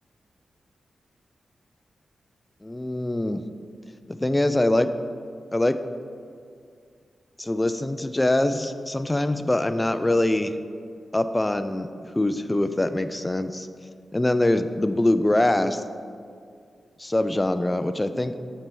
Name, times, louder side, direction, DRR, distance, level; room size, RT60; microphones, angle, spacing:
voice 1, 2.6-3.4 4.1-4.9 5.5-5.8 7.4-10.5 11.1-11.9 12.1-13.7 14.1-15.8 17.0-18.4, left 1 dB, 15° left, 10 dB, 0.3 m, -23 dB
7.2 x 3.4 x 6.0 m, 2.3 s
cardioid pair, 85°, 0 cm